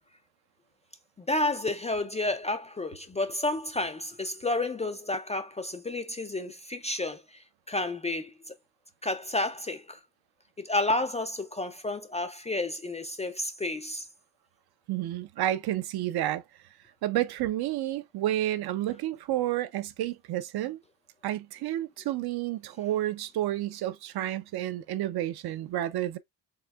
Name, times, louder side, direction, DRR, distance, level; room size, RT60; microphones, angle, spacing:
voice 1, 1.2-8.5 9.0-10.0 10.6-14.1, left 2 dB, 15° left, 0.3 m, -31 dB
voice 2, 14.9-16.4 17.0-20.8 21.2-26.2, right 13 dB, 60° right, 0.6 m, -30 dB
4.7 x 3.3 x 2.3 m
cardioid pair, 100°, 44 cm